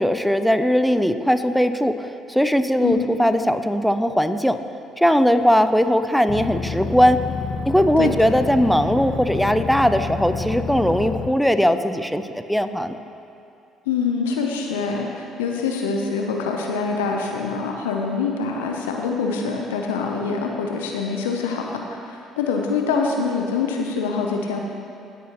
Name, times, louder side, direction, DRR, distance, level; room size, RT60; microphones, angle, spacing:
voice 1, 0.0-4.6 5.0-7.2 7.7-13.0, equal, ahead, 9 dB, 0.5 m, -19 dB
sound 1, 6.3-11.3, left 5 dB, 40° left, 0.7 m, -29 dB
voice 2, 13.9-24.6, left 5 dB, 85° left, 1 dB, 0.6 m, -25 dB
16.5 x 6.2 x 3.0 m, 2.6 s
hypercardioid pair, 55°, 0 cm